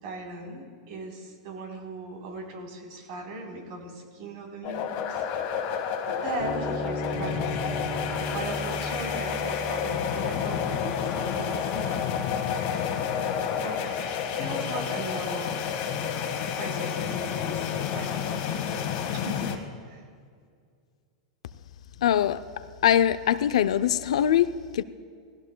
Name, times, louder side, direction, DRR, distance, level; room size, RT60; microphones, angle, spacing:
voice 1, 0.0-5.3 6.1-7.7 8.3-12.2 13.6-13.8 14.3-15.6 16.6-17.7 17.9-19.6 19.9-20.0, right 3 dB, 60° right, 3.7 m, -38 dB
sound 1, 4.6-19.6, left 7 dB, 50° left, 1.5 m, -30 dB
sound 2, 6.4-13.0, equal, 20° left, 2.5 m, -37 dB
voice 2, 22.0-22.4 22.8-24.8, left 10 dB, 80° left, 0.5 m, -22 dB
19.5 x 16.5 x 2.3 m
hypercardioid pair, 130°, 3 cm